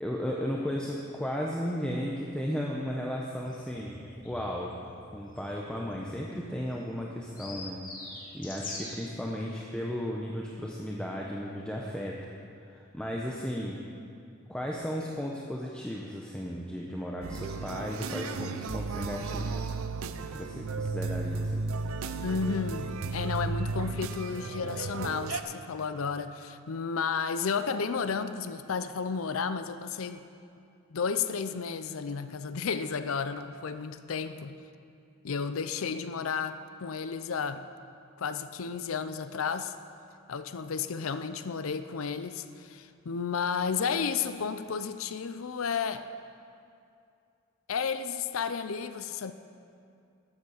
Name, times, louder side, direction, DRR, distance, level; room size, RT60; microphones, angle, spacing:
voice 1, 0.0-4.8 5.1-7.8 8.3-12.3 12.7-13.8 14.5-19.7 20.3-21.6, equal, 5° left, -3 dB, 0.8 m, -35 dB
sound 1, 3.4-9.0, left 2 dB, 40° left, 2.3 m, -45 dB
sound 2, 17.2-25.4, right 4 dB, 75° right, 0.6 m, -34 dB
voice 2, 22.2-30.2 30.9-34.5 35.2-37.6 38.2-39.7 40.3-46.1 47.7-49.3, left 5 dB, 70° left, 11 dB, 0.5 m, -32 dB
12.5 x 8.0 x 6.5 m, 2.5 s
head